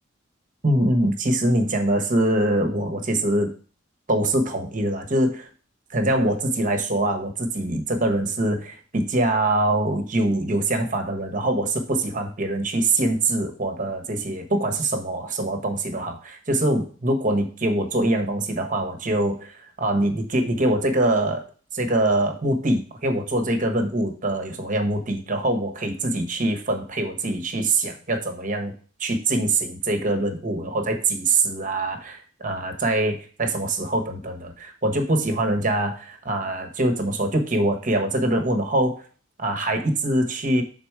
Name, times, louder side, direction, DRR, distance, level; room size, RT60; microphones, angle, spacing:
voice 1, 0.6-3.5 4.1-5.5 5.9-21.4 21.7-28.7 29.0-39.0 39.4-40.6, right 1 dB, 40° right, 4 dB, 1.1 m, -24 dB
6.8 x 4.0 x 4.7 m, 0.40 s
head